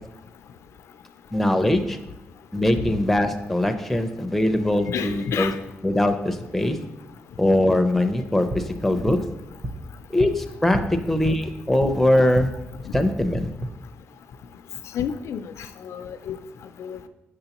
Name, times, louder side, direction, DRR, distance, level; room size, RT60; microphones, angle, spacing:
voice 1, 1.3-2.0 2.5-5.5 5.8-6.8 7.4-9.2 10.1-10.8 11.1-12.5 12.9-13.5, left 1 dB, 5° left, 5 dB, 0.5 m, -21 dB
voice 2, 4.9-5.6 12.8-12.9 14.9-15.5 15.8-16.4 16.8-17.0, left 8 dB, 80° left, 10 dB, 0.4 m, -29 dB
sound 1, 8.3-12.5 12.8-13.7, right 1 dB, 30° right, 0.8 m, -34 dB
6.7 x 6.2 x 2.9 m, 0.95 s
wide cardioid pair, 140°, 5 cm